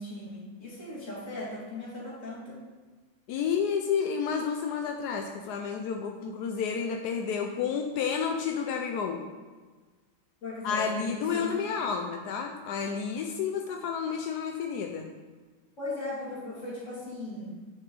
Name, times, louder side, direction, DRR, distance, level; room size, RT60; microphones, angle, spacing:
voice 1, 0.0-2.6 10.4-11.5 15.8-17.5, left 1 dB, 35° left, -7 dB, 2.8 m, -38 dB
voice 2, 3.3-9.2 10.6-15.1, left 6 dB, 70° left, 3 dB, 0.9 m, -30 dB
8.4 x 6.2 x 3.8 m, 1.4 s
omnidirectional pair, 2.2 m